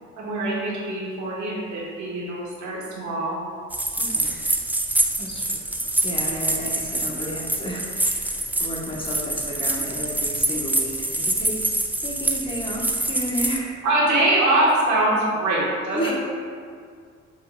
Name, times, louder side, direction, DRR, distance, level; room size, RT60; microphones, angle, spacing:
voice 1, 0.2-3.4 13.8-16.1, right 1 dB, 70° right, -5 dB, 1.4 m, -23 dB
sound 1, 3.7-13.6, right 2 dB, 5° right, 0.3 m, -25 dB
voice 2, 4.0-4.4 5.2-5.7 6.0-8.3 8.6-13.8 15.9-16.1, equal, 15° left, -4 dB, 1.0 m, -32 dB
6.1 x 3.7 x 2.3 m, 2.1 s
cardioid pair, 90°, 30 cm